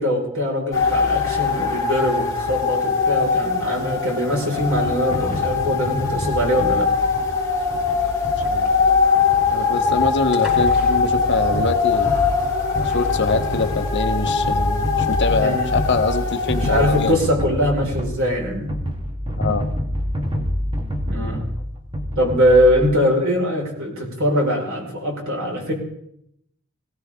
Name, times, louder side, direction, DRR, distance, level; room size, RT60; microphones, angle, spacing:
voice 1, 0.0-6.9 15.3-15.7 16.5-18.7 21.1-21.4 22.2-25.7, equal, 65° right, 0 dB, 5.2 m, -21 dB
sound 1, 0.7-17.1, left 5 dB, 15° left, 3.1 m, -22 dB
sound 2, 4.6-23.0, equal, 25° right, 1.8 m, -28 dB
sound 3, 6.8-13.9, left 1 dB, 5° right, 5.8 m, -43 dB
voice 2, 9.5-12.1 12.8-17.2 19.3-19.7, left 3 dB, 55° left, 7 dB, 1.2 m, -24 dB
21.0 x 16.5 x 3.8 m, 0.74 s
head